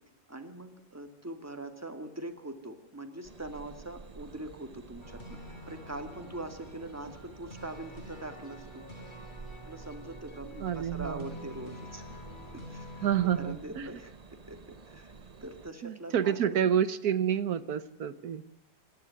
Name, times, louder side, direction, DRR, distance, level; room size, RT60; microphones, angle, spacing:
voice 1, 0.3-5.4 5.7-8.8 9.6-12.1 12.5-13.1 13.4-14.1 14.5-15.1 15.4-16.4 16.7-16.8, right 1 dB, 10° right, 7 dB, 2.1 m, -42 dB
sound 1, 3.2-15.7, right 4 dB, 35° right, 0.7 m, -50 dB
sound 2, 5.0-13.5, left 1 dB, 25° left, 3.8 m, -48 dB
voice 2, 10.6-11.5 13.0-13.9 15.8-18.4, right 9 dB, 60° right, 15 dB, 1.3 m, -29 dB
27.5 x 11.0 x 9.5 m, 0.89 s
omnidirectional pair, 1.9 m